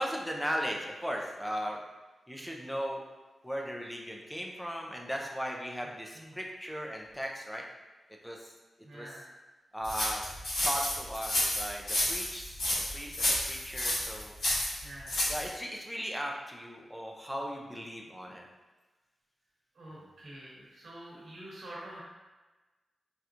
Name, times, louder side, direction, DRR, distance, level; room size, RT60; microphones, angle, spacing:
voice 1, 0.0-1.8 2.3-3.0 3.4-7.6 8.2-8.5 8.9-9.2 9.7-10.2 10.6-12.7 12.9-14.3 15.3-18.4, equal, ahead, -1 dB, 0.4 m, -37 dB
voice 2, 8.8-9.3 14.8-15.2 19.8-22.0, right 1 dB, 65° right, -7 dB, 1.1 m, -46 dB
sound 1, 9.8-15.5, left 1 dB, 70° left, 1.4 m, -30 dB
4.2 x 2.3 x 2.5 m, 1.2 s
wide cardioid pair, 145°, 0 cm